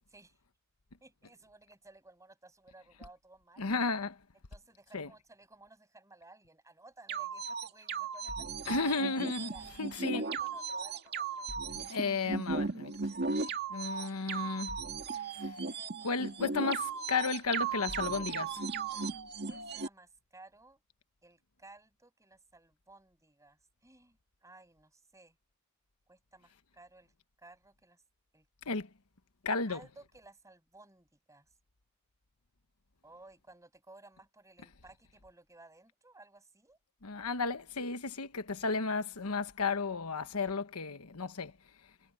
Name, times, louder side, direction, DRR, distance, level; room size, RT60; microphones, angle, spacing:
voice 1, 1.0-3.7 4.5-8.9 9.5-9.7 10.1-11.5 19.5-20.8 21.2-25.4 26.1-27.1 27.4-28.0 28.3-28.5 29.7-31.5 33.0-36.8, right 2 dB, 15° right, 6.8 m, -57 dB
voice 2, 3.6-4.2 4.9-5.1 8.7-9.5 9.8-10.2 11.7-12.9 13.7-14.8 15.1-15.6 16.0-18.6 28.7-28.9 29.4-29.8 37.0-41.5, left 4 dB, 85° left, 1.2 m, -33 dB
sound 1, 7.1-19.9, right 4 dB, 50° right, 2.1 m, -36 dB
head